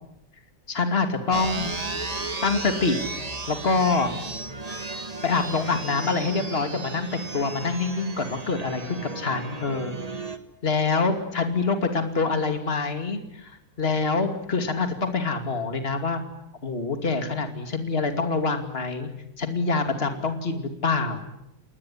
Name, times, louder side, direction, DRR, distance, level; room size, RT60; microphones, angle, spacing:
voice 1, 0.7-1.8 2.4-3.0 3.5-4.1 4.7-4.8 5.2-9.9 10.6-16.2 16.6-19.1 19.4-21.2, left 4 dB, 40° left, 7 dB, 2.8 m, -25 dB
sound 1, 1.3-10.4, right 3 dB, 25° right, 1.7 m, -34 dB
30.0 x 20.0 x 9.9 m, 0.83 s
omnidirectional pair, 1.6 m